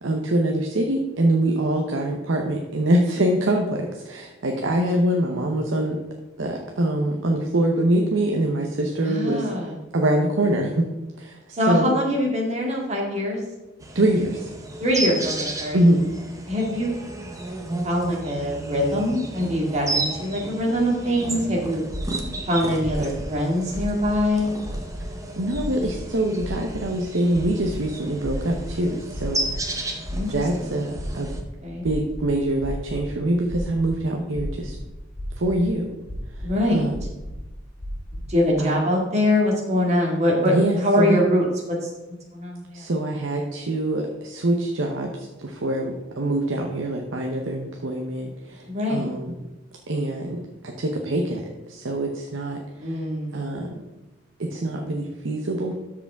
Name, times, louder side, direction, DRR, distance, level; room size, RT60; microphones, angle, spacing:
voice 1, 0.0-6.0 6.4-9.5 9.9-10.9 11.2-11.9 13.9-14.5 15.7-16.0 25.0-29.9 30.3-31.3 31.8-34.8 35.4-35.9 36.4-37.0 38.6-38.7 40.4-41.2 42.7-45.1 45.4-49.4 49.9-52.9 53.3-53.7 54.4-55.7, right 1 dB, 75° right, 1 dB, 0.9 m, -24 dB
voice 2, 9.0-9.8 11.5-13.4 14.8-15.8 16.5-16.9 17.8-21.8 22.5-24.5 30.1-30.3 30.6-30.7 31.6-31.8 36.4-36.8 38.3-41.9 42.3-42.9 48.7-49.1 52.8-53.4, left 1 dB, 35° right, -2 dB, 2.0 m, -23 dB
sound 1, 13.8-31.4, right 2 dB, 15° right, 0.9 m, -33 dB
sound 2, 21.9-22.3 22.8-23.3 23.7-24.3 24.6-25.1 25.5-26.0 26.4-26.8 27.3-27.8 28.2-28.7 29.1-29.6 30.0-30.6 30.9-31.4 31.8-33.0 33.5-33.9 34.3-34.9 35.1-35.6 36.0-36.5 36.9-37.4 37.8-38.2, equal, 10° left, 3.2 m, -33 dB
13.0 x 4.9 x 3.5 m, 1.0 s
head